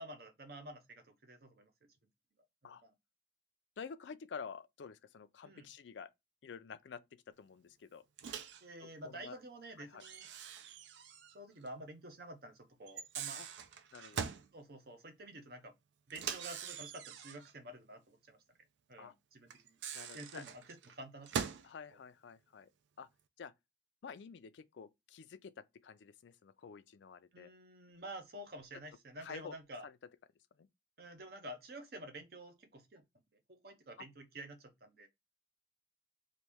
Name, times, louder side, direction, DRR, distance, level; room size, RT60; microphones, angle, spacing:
voice 1, 0.0-1.7 2.6-2.9 5.4-5.7 8.6-10.3 11.3-13.4 14.5-15.7 16.1-18.4 18.9-19.8 20.1-21.6 27.3-29.9 31.0-33.0 33.5-35.1, right 1 dB, 55° right, 0.7 m, -50 dB
voice 2, 3.8-6.1 6.4-8.0 8.8-9.4 9.8-10.0 13.3-13.5 13.9-14.2 19.0-19.1 19.9-20.4 21.6-22.7 23.0-23.1 23.4-23.5 24.0-25.5 25.8-27.5 29.2-29.5 29.8-30.0 30.6-30.7, left 6 dB, 80° left, 0.4 m, -49 dB
Microwave oven, 8.2-8.6 10.0-11.4 11.7-11.8 12.9-14.5 16.1-17.5 19.5-21.7, right 7 dB, 80° right, 0.4 m, -43 dB
3.1 x 2.6 x 3.4 m
head